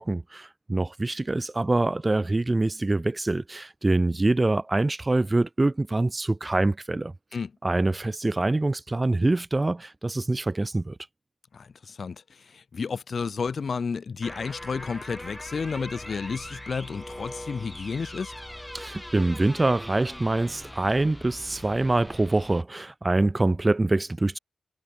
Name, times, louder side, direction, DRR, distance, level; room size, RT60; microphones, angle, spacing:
voice 1, 0.0-7.1 7.6-11.0 18.7-24.4, right 2 dB, 20° right, 2.4 m, -25 dB
voice 2, 11.5-18.3, left 5 dB, 45° left, 2.2 m, -32 dB
sound 1, 14.2-22.6, left 1 dB, 5° left, 3.9 m, -41 dB
wide cardioid pair, 130°, 0 cm